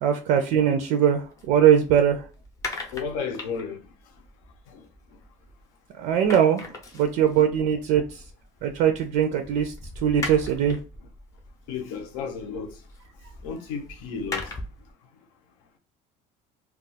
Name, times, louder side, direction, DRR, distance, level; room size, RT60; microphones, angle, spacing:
voice 1, 0.0-2.2 6.0-6.6 6.9-8.2 8.6-9.7 10.0-10.8, right 9 dB, 50° right, 0.4 m, -21 dB
sound 1, 1.1-5.8 6.0-14.9, left 2 dB, 20° left, 0.6 m, -40 dB
voice 2, 2.9-3.9 4.7-4.9 11.7-12.8 13.4-14.5, left 6 dB, 75° left, 0.7 m, -33 dB
2.3 x 2.3 x 3.9 m
cardioid pair, 175°, 16 cm